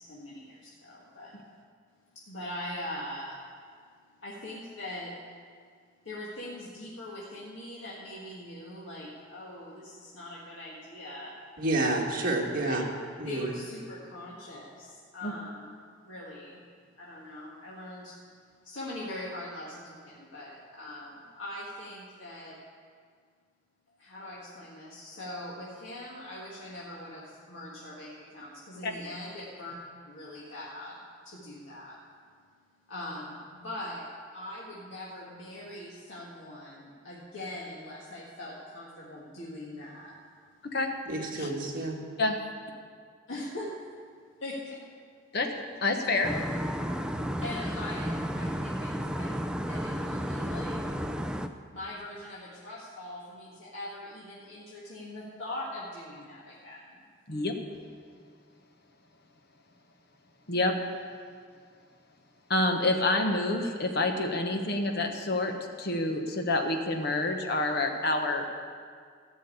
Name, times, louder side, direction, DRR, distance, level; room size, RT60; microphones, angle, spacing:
voice 1, 0.0-1.3 2.3-3.4 4.2-5.1 6.0-11.3 13.2-15.7 16.0-16.6 17.0-18.2 18.6-22.6 23.9-29.7 30.1-32.0 32.9-34.1 34.3-40.1 43.3-43.7 44.4-44.8 47.4-50.8 51.7-57.0, left 1 dB, 75° left, -6 dB, 1.9 m, -42 dB
voice 2, 11.6-12.8 13.2-13.5 41.1-42.0, right 2 dB, 45° right, -1 dB, 1.9 m, -29 dB
voice 3, 45.8-46.3 57.3-57.5 60.5-60.7 62.5-68.5, left 2 dB, 55° left, 4 dB, 1.3 m, -28 dB
sound 1, 46.2-51.5, equal, 5° right, 0.4 m, -32 dB
14.5 x 6.4 x 8.5 m, 2.1 s
head